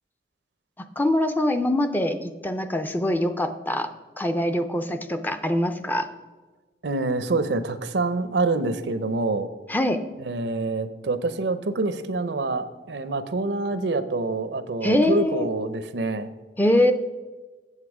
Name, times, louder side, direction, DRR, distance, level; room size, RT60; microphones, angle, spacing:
voice 1, 1.0-3.9 4.2-6.1 9.7-10.0 14.8-15.5 16.6-16.9, left 1 dB, 10° left, 8 dB, 0.4 m, -23 dB
voice 2, 6.8-9.5 10.2-16.3, right 3 dB, 70° right, 12 dB, 0.6 m, -26 dB
8.2 x 7.4 x 4.8 m, 1.3 s
head